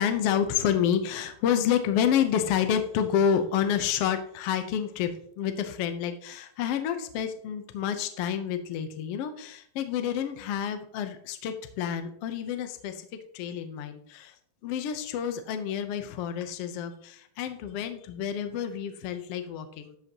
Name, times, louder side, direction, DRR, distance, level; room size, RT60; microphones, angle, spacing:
voice 1, 0.0-13.1 13.3-14.3 14.6-20.0, left 8 dB, 70° left, 8 dB, 1.5 m, -29 dB
12.5 x 7.7 x 3.0 m, 0.64 s
omnidirectional pair, 3.7 m